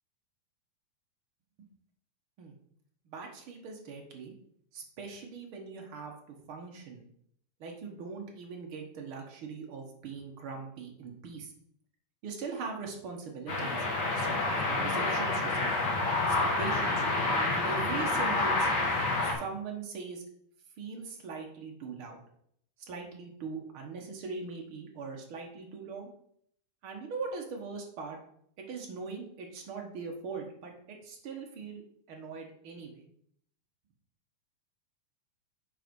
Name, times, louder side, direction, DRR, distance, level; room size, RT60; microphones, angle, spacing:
voice 1, 3.0-4.3 4.7-7.0 7.6-11.5 12.2-13.8 14.1-16.0 16.3-17.0 17.5-18.7 19.2-20.2 20.8-22.2 22.9-26.1 26.8-28.2 28.6-31.8 32.1-33.1, right 5 dB, 55° right, 1 dB, 1.5 m, -41 dB
sound 1, 13.5-19.3, left 2 dB, 40° left, 1.7 m, -28 dB
7.9 x 4.9 x 5.2 m, 0.68 s
omnidirectional pair, 3.9 m